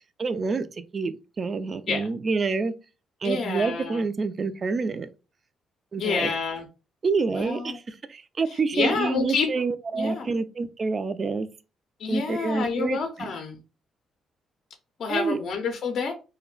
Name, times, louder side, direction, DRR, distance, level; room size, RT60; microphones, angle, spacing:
voice 1, 0.2-2.7 3.2-5.1 5.9-6.3 7.0-11.5 12.1-13.3 15.1-15.4, right 4 dB, 40° right, 0.3 m, -27 dB
voice 2, 3.2-4.0 6.0-6.7 7.3-7.8 8.5-9.6 9.9-10.3 12.0-13.6 15.0-16.1, left 5 dB, 60° left, 0.5 m, -28 dB
2.3 x 2.1 x 3.6 m
cardioid pair, 90°, 0 cm